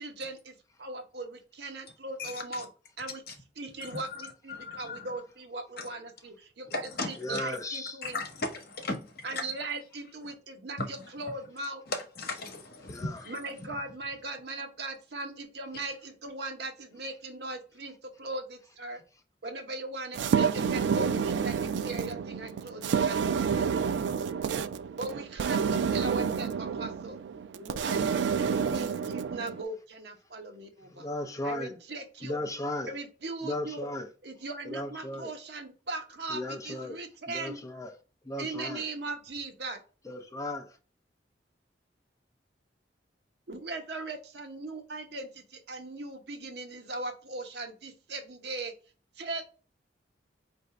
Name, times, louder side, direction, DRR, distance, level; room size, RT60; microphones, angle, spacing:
voice 1, 0.0-2.7 3.0-3.2 3.6-8.2 9.2-11.8 13.3-19.0 19.4-23.2 25.0-27.2 27.5-31.1 31.4-32.4 32.9-33.9 34.2-37.6 38.4-39.8 43.5-48.7 49.2-49.4, right 2 dB, 65° right, 0.8 m, -39 dB
voice 2, 2.2-2.6 3.3-3.4 3.8-5.1 5.8-5.9 6.7-7.4 8.0-9.4 10.2-10.3 10.8-11.3 11.9-13.4, left 3 dB, 60° left, 1.0 m, -37 dB
voice 3, 7.2-8.0 12.9-13.2 13.6-13.7 30.9-31.7 32.2-32.9 33.4-34.1 34.6-35.3 36.3-37.0 37.3-38.0 38.2-38.8 40.0-40.8, left 1 dB, 20° left, 0.5 m, -36 dB
sound 1, 20.1-29.6, right 6 dB, 85° right, 0.3 m, -29 dB
4.7 x 2.6 x 3.2 m
head